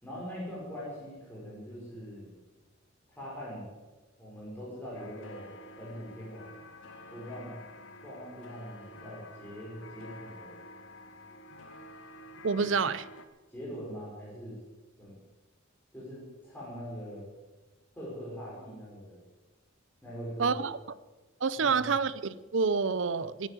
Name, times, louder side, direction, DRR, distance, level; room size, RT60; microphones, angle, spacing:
voice 1, 0.0-2.3 3.2-3.7 4.2-5.5 5.8-6.5 7.1-7.5 8.0-10.6 13.5-14.6 15.0-15.2 15.9-17.3 17.9-19.2 20.0-20.5 21.6-21.9, equal, 10° left, 5.4 m, -42 dB
sound 1, 4.9-13.3, left 1 dB, 80° left, 1.4 m, -49 dB
voice 2, 12.4-13.1 20.4-20.8 21.4-23.5, right 5 dB, 70° right, 0.6 m, -28 dB
16.0 x 9.3 x 7.6 m
head